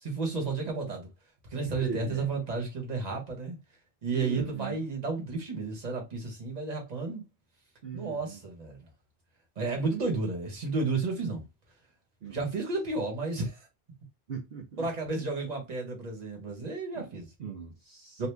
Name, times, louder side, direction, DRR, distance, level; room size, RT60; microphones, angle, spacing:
voice 1, 0.0-1.1 1.5-3.6 4.0-7.2 7.9-8.8 9.6-11.5 12.3-13.7 14.8-17.3 18.2-18.3, right 3 dB, 40° right, 1.1 m, -32 dB
voice 2, 1.8-2.3 4.1-4.8 7.8-8.4 12.2-12.4 14.3-14.9 16.9-17.1 17.4-18.3, right 6 dB, 65° right, 0.9 m, -40 dB
2.7 x 2.5 x 3.3 m
omnidirectional pair, 1.1 m